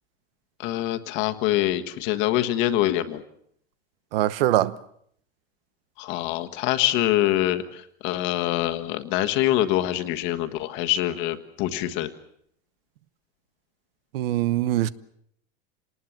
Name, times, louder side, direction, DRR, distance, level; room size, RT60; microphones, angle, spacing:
voice 1, 0.6-3.2 6.0-12.1, left 14 dB, 40° left, 1.5 m, -25 dB
voice 2, 4.1-4.7 14.1-14.9, right 14 dB, 75° right, 1.0 m, -22 dB
27.0 x 20.0 x 7.4 m
supercardioid pair, 175°, 29 cm